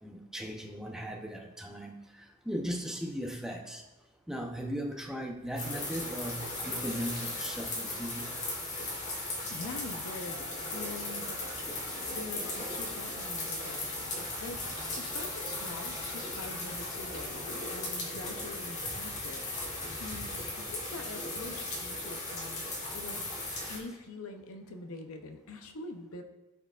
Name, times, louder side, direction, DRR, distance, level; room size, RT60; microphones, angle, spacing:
voice 1, 0.0-3.8 4.3-8.3, equal, ahead, 2 dB, 0.6 m, -38 dB
sound 1, 5.6-23.8, left 2 dB, 35° left, 1.3 m, -37 dB
voice 2, 9.5-10.4 10.7-11.4 12.1-19.5 20.0-26.2, left 3 dB, 70° left, 6 dB, 0.7 m, -45 dB
sound 2, 10.2-17.8, equal, 50° left, 1.1 m, -51 dB
12.5 x 4.5 x 2.4 m, 1.1 s
head